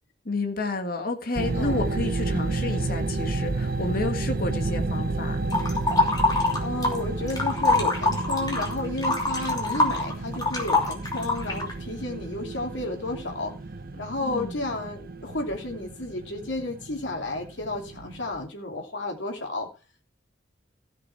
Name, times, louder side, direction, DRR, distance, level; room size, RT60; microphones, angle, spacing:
voice 1, 0.3-5.4 14.3-14.6, left 2 dB, 50° left, 5 dB, 1.6 m, -30 dB
sound 1, 1.4-18.5, right 2 dB, 55° right, 0.8 m, -31 dB
voice 2, 1.5-1.9 6.6-13.5 14.0-19.7, left 2 dB, 80° left, 2 dB, 2.8 m, -32 dB
sound 2, 5.5-7.0 7.3-11.7, left 2 dB, 20° left, 2.9 m, -24 dB
15.0 x 6.1 x 4.7 m, 0.32 s
head